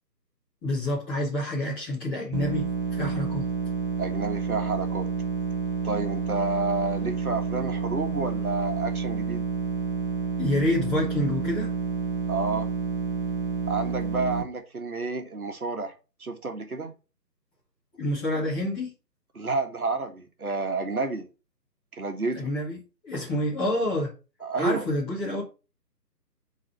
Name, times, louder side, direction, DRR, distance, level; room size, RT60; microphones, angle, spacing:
voice 1, 0.6-3.5 10.4-11.7 18.0-18.9 22.3-22.8 23.0-24.1 24.6-25.4, left 1 dB, 10° left, 1.9 m, -28 dB
sound 1, 2.3-14.4, right 5 dB, 30° right, 1.0 m, -29 dB
voice 2, 4.0-5.1 5.8-9.4 12.3-12.7 13.7-15.9 16.2-16.9 19.3-21.3 21.9-22.5 24.4-24.8, right 3 dB, 60° right, 1.6 m, -30 dB
9.0 x 4.2 x 5.9 m
figure-of-eight pair, 150°, 50 cm